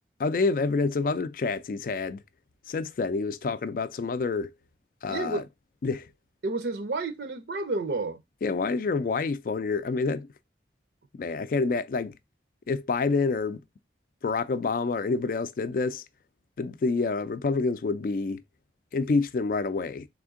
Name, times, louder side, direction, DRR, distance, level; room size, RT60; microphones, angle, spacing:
voice 1, 0.2-2.2 2.7-4.5 5.0-5.4 5.8-6.1 8.4-10.3 11.2-12.2 12.7-13.6 14.2-16.0 16.6-18.4 18.9-20.1, left 4 dB, 50° left, 0.3 m, -27 dB
voice 2, 5.1-5.5 6.4-8.2, right 3 dB, 70° right, 0.6 m, -30 dB
3.6 x 3.5 x 3.6 m
head